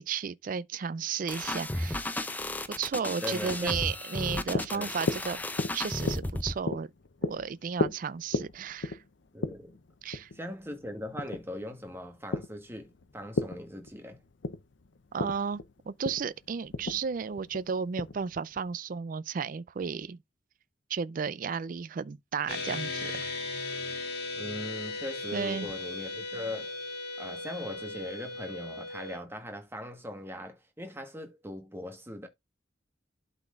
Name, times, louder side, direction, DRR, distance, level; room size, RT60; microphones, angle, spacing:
voice 1, 0.0-2.1 2.7-5.4 5.7-6.9 7.2-9.0 10.0-10.3 15.1-20.2 20.9-23.2 23.7-23.9 25.3-25.7, right 6 dB, 50° right, 0.4 m, -34 dB
sound 1, 1.3-6.6, left 1 dB, 10° left, 0.5 m, -34 dB
voice 2, 3.2-3.7 4.7-4.9 9.3-9.8 10.3-14.2 24.4-26.8 27.2-32.3, left 1 dB, 15° right, 1.3 m, -40 dB
sound 2, 4.2-18.7, left 3 dB, 85° left, 0.7 m, -36 dB
sound 3, 22.5-29.2, left 3 dB, 60° left, 2.4 m, -37 dB
12.0 x 4.1 x 2.4 m
head